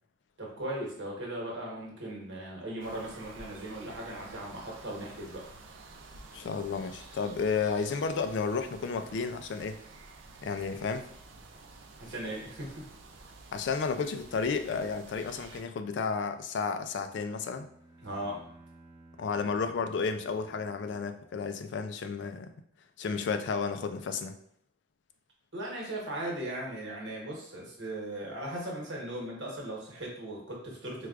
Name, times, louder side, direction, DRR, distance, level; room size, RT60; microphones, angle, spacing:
voice 1, 0.4-5.4 12.0-12.9 18.0-18.5 25.5-31.1, right 1 dB, 75° right, -3 dB, 1.1 m, -38 dB
sound 1, 2.8-15.6, right 3 dB, 90° right, 0.5 m, -51 dB
voice 2, 6.3-9.8 10.4-11.1 13.5-17.7 19.2-22.5 23.0-24.3, left 5 dB, 70° left, 8 dB, 0.3 m, -32 dB
Bowed string instrument, 16.8-21.6, right 2 dB, 15° right, 0.4 m, -57 dB
4.6 x 2.2 x 2.4 m, 0.68 s
head